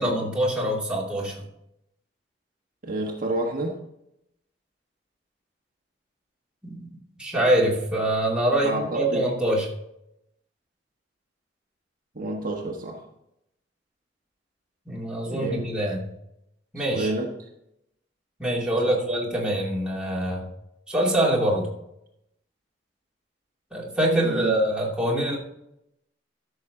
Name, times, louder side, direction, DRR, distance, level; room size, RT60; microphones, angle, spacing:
voice 1, 0.0-1.4 6.6-6.9 7.2-9.7 14.9-16.1 16.7-17.1 18.4-20.5 20.9-21.7 23.7-25.4, right 1 dB, 5° right, -4 dB, 2.5 m, -24 dB
voice 2, 2.8-3.8 8.6-9.3 12.1-13.0 15.3-15.7 16.8-17.3 18.8-19.0 24.2-24.6, right 2 dB, 50° right, 0 dB, 1.4 m, -29 dB
14.0 x 6.4 x 3.8 m, 0.82 s
head